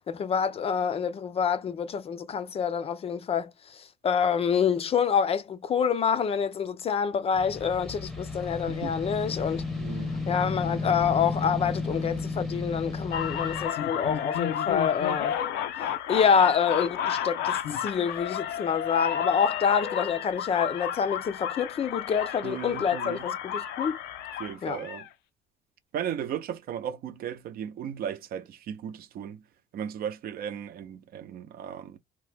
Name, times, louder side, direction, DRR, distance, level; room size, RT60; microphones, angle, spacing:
voice 1, 0.1-9.6 10.3-15.4 16.1-24.0 24.6-24.8, left 7 dB, 35° left, 0.4 m, -27 dB
sound 1, 7.3-13.7, left 3 dB, ahead, 0.7 m, -33 dB
voice 2, 9.8-10.1 22.4-23.3 24.4-25.1 25.9-29.4 29.7-32.0, right 9 dB, 60° right, 0.6 m, -36 dB
sound 2, 13.1-25.1, left 9 dB, 85° left, 0.5 m, -32 dB
2.9 x 2.1 x 3.3 m
cardioid pair, 110°, 17 cm